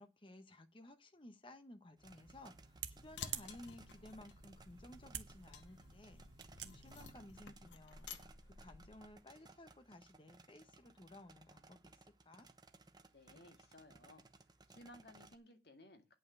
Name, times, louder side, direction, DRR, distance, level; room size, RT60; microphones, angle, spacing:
voice 1, 0.0-6.2 6.6-8.1 8.4-12.0 12.2-12.5, left 1 dB, 30° left, 1.2 m, -57 dB
sound 1, 2.0-15.4, right 3 dB, 25° right, 0.9 m, -63 dB
sound 2, 2.0-7.4, right 10 dB, 75° right, 1.2 m, -51 dB
sound 3, 3.0-9.2, left 6 dB, 80° left, 1.0 m, -54 dB
voice 2, 13.1-14.3 14.7-16.1, left 1 dB, 60° left, 1.9 m, -59 dB
9.3 x 5.6 x 8.0 m
head